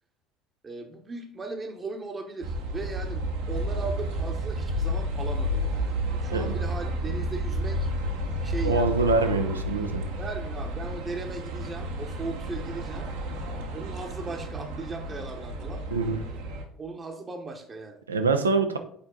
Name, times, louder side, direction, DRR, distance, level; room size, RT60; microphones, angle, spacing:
voice 1, 0.6-7.9 8.4-9.2 10.2-13.4 13.7-15.8 16.8-18.0, right 3 dB, 30° right, 4 dB, 0.9 m, -38 dB
sound 1, 2.4-16.6, equal, 70° right, 0.9 m, -31 dB
voice 2, 8.6-10.1 15.9-16.2 18.1-18.8, right 3 dB, 85° right, 7 dB, 0.5 m, -24 dB
6.8 x 4.4 x 3.8 m, 0.65 s
figure-of-eight pair, 60°, 0 cm